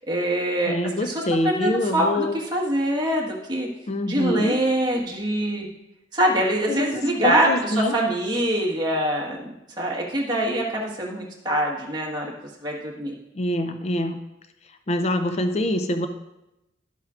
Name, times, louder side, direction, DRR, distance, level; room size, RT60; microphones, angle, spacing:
voice 1, 0.1-0.7 1.0-3.7 4.1-5.7 6.1-9.5 9.8-12.3 12.6-13.1, right 1 dB, 20° right, -3 dB, 1.4 m, -24 dB
voice 2, 0.7-2.4 3.9-4.6 6.7-7.9 13.3-14.2 14.9-16.1, left 1 dB, 35° left, 7 dB, 0.4 m, -25 dB
11.5 x 7.8 x 2.4 m, 0.92 s
head